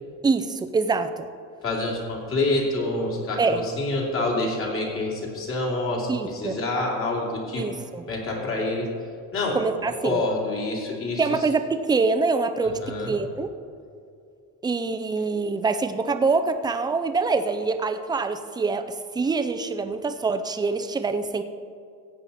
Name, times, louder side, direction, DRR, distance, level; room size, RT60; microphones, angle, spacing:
voice 1, 0.2-1.3 3.4-3.6 6.1-6.6 7.6-8.1 9.5-10.2 11.2-12.8 13.1-13.5 14.6-18.9 19.1-21.4, right 4 dB, 10° right, 9 dB, 0.5 m, -25 dB
voice 2, 1.6-7.7 8.1-8.9 9.3-11.2 12.6-13.1, left 2 dB, 40° left, -2 dB, 2.9 m, -27 dB
15.5 x 8.8 x 4.1 m, 2.5 s
cardioid pair, 155°, 35 cm